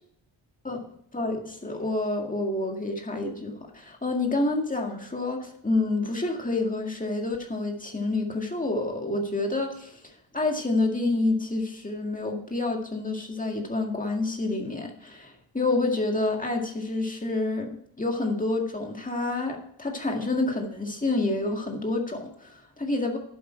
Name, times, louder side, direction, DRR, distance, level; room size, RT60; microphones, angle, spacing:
voice 1, 1.1-10.0 10.3-17.7 18.0-23.2, left 2 dB, 15° left, 1 dB, 2.0 m, -28 dB
11.0 x 7.9 x 4.5 m, 0.69 s
wide cardioid pair, 130°, 47 cm